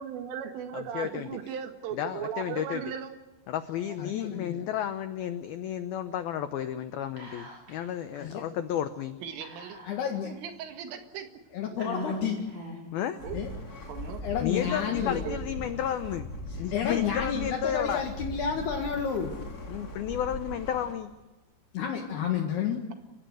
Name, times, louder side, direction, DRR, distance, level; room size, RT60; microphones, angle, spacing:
voice 1, 0.0-3.1 9.2-9.8 10.2-11.3 13.2-13.4 13.9-14.2 14.6-15.4, right 8 dB, 80° right, 6 dB, 4.5 m, -37 dB
voice 2, 0.7-1.3 1.9-2.8 3.5-9.2 12.9-13.2 14.4-16.3 16.5-18.0 19.7-21.1, left 10 dB, 90° left, 9 dB, 2.1 m, -32 dB
voice 3, 4.0-4.6 8.2-8.4 9.9-10.3 11.5-12.5 13.3-13.5 14.2-15.2 16.7-19.4 21.7-22.9, left 7 dB, 60° left, 2 dB, 3.5 m, -30 dB
Whispering, 7.2-7.9 8.2-8.3 9.4-10.3 10.9-11.0 11.8-13.0, equal, 35° right, 7.0 m, -39 dB
sound 1, 13.2-20.9, left 1 dB, 30° left, 2.1 m, -39 dB
29.5 x 16.0 x 8.0 m, 1.1 s
omnidirectional pair, 5.7 m